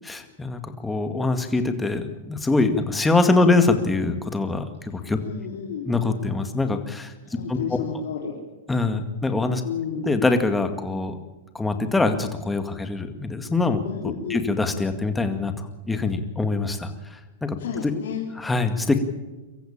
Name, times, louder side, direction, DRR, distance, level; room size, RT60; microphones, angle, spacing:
voice 1, 0.1-5.2 5.9-7.1 7.5-7.6 8.7-9.6 10.0-11.2 11.5-17.6 17.8-17.9 18.4-19.0, left 3 dB, 10° left, 7 dB, 2.1 m, -24 dB
voice 2, 5.2-5.9 7.2-8.3 9.6-10.1 13.8-14.4 17.6-18.2, left 7 dB, 75° left, -2 dB, 3.6 m, -31 dB
24.0 x 14.5 x 8.8 m, 1.1 s
hypercardioid pair, 135°, 0 cm